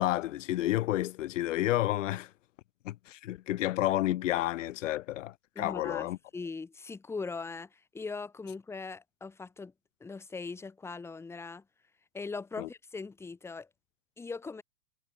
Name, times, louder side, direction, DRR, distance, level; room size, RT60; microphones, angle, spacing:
voice 1, 0.0-2.3 2.9-6.2 12.6-12.7, left 15 dB, 60° left, 1.9 m, -30 dB
voice 2, 5.5-9.7 10.0-11.6 12.1-13.7 14.2-14.6, left 4 dB, 5° left, 2.5 m, -40 dB
supercardioid pair, 175°, 42 cm